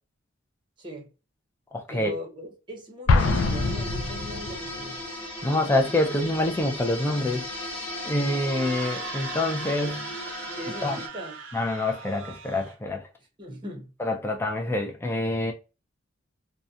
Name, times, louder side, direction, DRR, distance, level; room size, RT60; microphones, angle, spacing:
voice 1, 0.8-1.1 1.9-5.0 10.6-11.4 13.4-13.9, equal, 25° right, 0.7 m, -39 dB
voice 2, 1.7-2.2 5.4-7.5 8.0-10.1 10.8-11.0 11.5-13.0 14.0-15.5, left 1 dB, 10° left, 0.3 m, -26 dB
Explosion, 3.1-4.8, left 3 dB, 90° left, 0.4 m, -24 dB
sound 1, 3.2-11.1, left 1 dB, 30° left, 0.8 m, -36 dB
Screaming, 8.4-12.8, right 7 dB, 65° right, 0.5 m, -41 dB
2.7 x 2.1 x 2.3 m
head